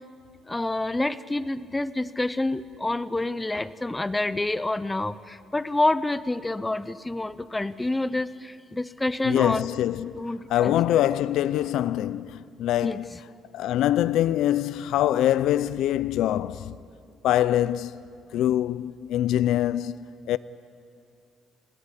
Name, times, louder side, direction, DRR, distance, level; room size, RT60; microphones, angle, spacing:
voice 1, 0.5-9.6 10.1-10.8 12.8-13.2, left 2 dB, 10° left, 0.6 m, -28 dB
voice 2, 9.2-13.1 13.5-16.8 17.2-18.0 18.3-20.4, left 12 dB, 80° left, 0.5 m, -24 dB
20.5 x 17.0 x 9.8 m
cardioid pair, 130°, 0 cm